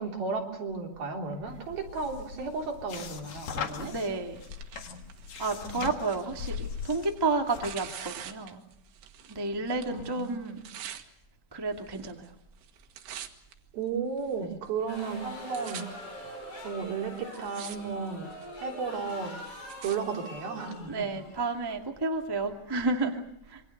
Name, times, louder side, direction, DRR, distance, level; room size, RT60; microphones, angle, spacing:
voice 1, 0.0-3.9 4.9-5.0 5.7-5.9 9.9-10.5 13.7-15.9 16.6-18.3 18.6-19.4 19.8-20.9, right 5 dB, 60° right, 1 dB, 5.3 m, -34 dB
sound 1, 1.5-8.3, left 7 dB, 55° left, 2.6 m, -40 dB
voice 2, 3.7-4.4 5.4-8.6 9.3-10.6 11.5-12.3 14.4-14.6 20.9-23.6, right 3 dB, 10° right, 2 dB, 1.2 m, -31 dB
Tearing, 4.0-9.4 9.7-11.0 11.8-12.3 12.6-13.5 14.2-14.3 15.0-15.1 15.3-15.8 16.6-16.7 17.2-17.8 18.1-18.5 19.1-20.0 20.8-20.9, right 10 dB, 85° right, 3.8 m, -45 dB
sound 2, 14.9-22.0, left 1 dB, 35° left, 8.4 m, -44 dB
27.0 x 24.5 x 6.7 m, 0.75 s
omnidirectional pair, 4.8 m